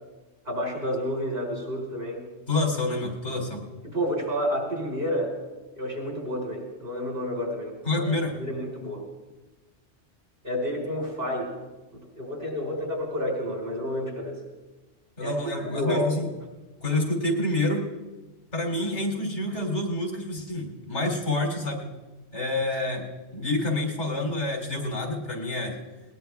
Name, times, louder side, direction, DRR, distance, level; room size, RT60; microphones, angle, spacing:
voice 1, 0.4-2.2 3.8-5.3 5.8-8.1 8.4-9.0 10.4-11.5 11.9-14.4 15.2-16.1, equal, 60° right, -1 dB, 5.0 m, -30 dB
voice 2, 2.5-3.7 7.9-8.4 15.2-16.3 16.8-17.9 18.5-21.8 22.3-23.1 23.3-25.8, left 2 dB, 85° left, 2 dB, 3.6 m, -28 dB
20.5 x 19.5 x 3.5 m, 1.2 s
omnidirectional pair, 1.2 m